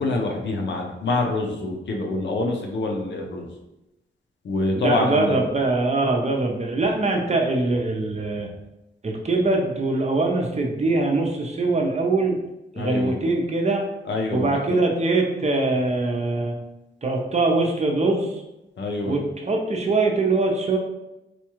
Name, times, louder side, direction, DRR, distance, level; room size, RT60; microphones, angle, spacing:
voice 1, 0.0-3.5 4.4-5.4 12.8-13.2 14.0-14.8 18.8-19.2, left 2 dB, 75° left, 2 dB, 0.7 m, -26 dB
voice 2, 4.7-8.5 9.0-12.4 12.7-13.9 14.3-16.6 17.0-18.4 19.1-20.8, right 2 dB, 35° right, 1 dB, 0.7 m, -22 dB
4.2 x 2.3 x 3.0 m, 0.94 s
cardioid pair, 75°, 19 cm